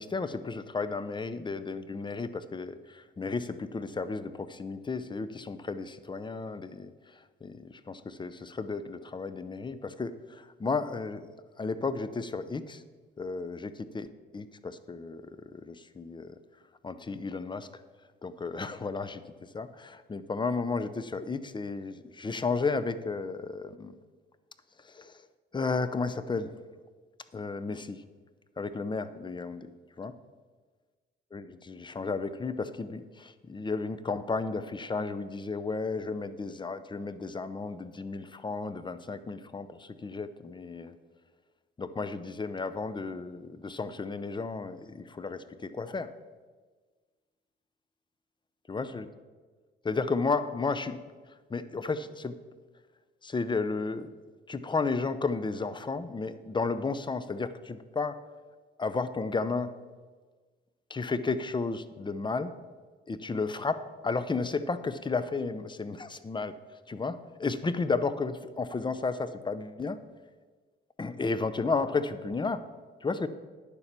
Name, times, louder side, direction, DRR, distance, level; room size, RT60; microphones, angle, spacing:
voice 1, 0.0-11.3 11.6-12.8 13.2-14.1 14.3-16.4 16.8-17.7 18.2-24.0 24.8-25.2 25.5-26.5 27.3-28.0 28.6-29.7 30.0-30.2 31.3-41.0 41.8-46.1 48.7-49.1 49.8-51.0 51.5-52.4 53.2-54.1 54.5-58.2 58.8-59.7 60.9-62.5 63.1-66.6 66.9-70.0 71.0-72.6 73.0-73.3, left 4 dB, 25° left, 13 dB, 0.7 m, -33 dB
9.8 x 7.2 x 6.7 m, 1.4 s
cardioid pair, 90°, 20 cm